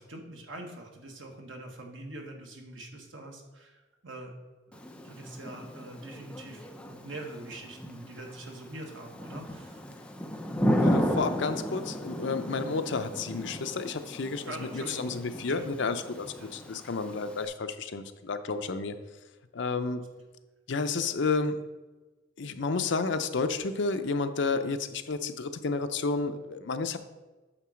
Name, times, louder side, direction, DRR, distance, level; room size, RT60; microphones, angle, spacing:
voice 1, 0.0-4.3 4.7-9.8 12.5-12.7 14.5-15.2 15.5-15.8 16.4-16.5, right 1 dB, 75° right, 2 dB, 1.4 m, -44 dB
Thunder / Rain, 4.7-17.5, equal, 5° left, 0.5 m, -34 dB
voice 2, 10.8-18.9 19.5-20.0 20.7-21.6 22.4-27.0, left 4 dB, 65° left, 8 dB, 0.6 m, -31 dB
8.9 x 3.8 x 6.3 m, 1.2 s
head